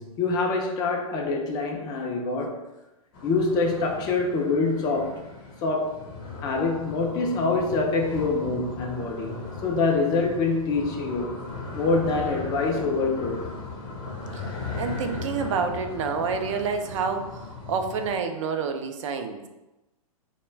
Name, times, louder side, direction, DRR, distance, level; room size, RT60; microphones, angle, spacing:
voice 1, 0.0-2.6 3.2-5.3 5.6-6.0 6.4-11.3 11.7-13.5, left 3 dB, 20° left, 1 dB, 0.3 m, -25 dB
sound 1, 3.1-18.2, left 3 dB, 40° left, 0.8 m, -38 dB
voice 2, 14.8-19.4, right 5 dB, 55° right, 6 dB, 0.4 m, -28 dB
2.3 x 2.1 x 3.2 m, 1.0 s
hypercardioid pair, 120°, 19 cm